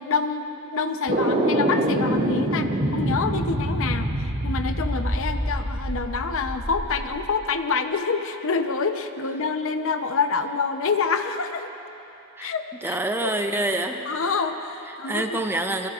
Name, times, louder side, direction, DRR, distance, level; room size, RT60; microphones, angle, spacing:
voice 1, 0.0-4.1 4.4-11.7 12.4-13.3 14.1-15.4, left 4 dB, 65° left, 7 dB, 0.8 m, -27 dB
sound 1, 1.1-7.2, right 1 dB, 40° right, 2.2 m, -25 dB
voice 2, 12.8-14.0 15.1-15.9, right 1 dB, 10° right, 5 dB, 0.6 m, -26 dB
26.0 x 21.5 x 2.5 m, 3.0 s
head